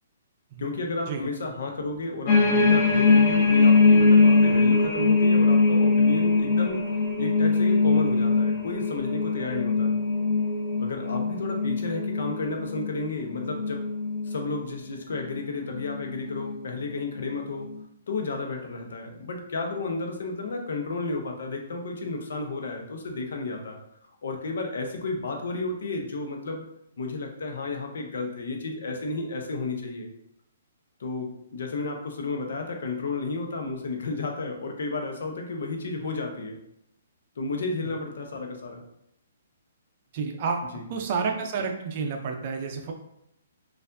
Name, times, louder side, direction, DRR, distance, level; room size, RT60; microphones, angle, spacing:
voice 1, 0.6-6.9 7.2-9.9 10.8-13.8 14.2-17.7 18.1-23.8 24.2-26.6 27.0-30.1 31.0-36.6 37.4-38.8 40.7-40.8, left 3 dB, 70° left, 2 dB, 0.8 m, -32 dB
sound 1, 2.3-14.6 15.1-15.4 15.8-16.5 17.2-17.3, left 4 dB, 35° left, 0.9 m, -22 dB
voice 2, 40.1-42.9, right 5 dB, 35° right, 4 dB, 0.5 m, -30 dB
4.4 x 2.6 x 2.6 m, 0.77 s
hypercardioid pair, 165°, 0 cm